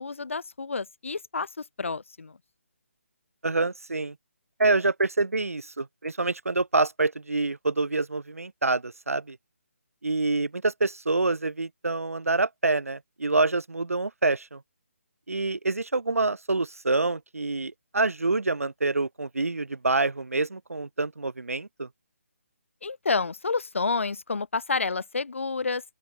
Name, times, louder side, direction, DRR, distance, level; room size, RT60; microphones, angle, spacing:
voice 1, 0.0-2.4 22.8-25.8, left 4 dB, 60° left, 1.3 m, -29 dB
voice 2, 3.4-4.1 4.6-9.4 10.0-14.6 15.3-21.9, right 3 dB, 80° right, 0.6 m, -26 dB
open air
figure-of-eight pair, 145°, 8 cm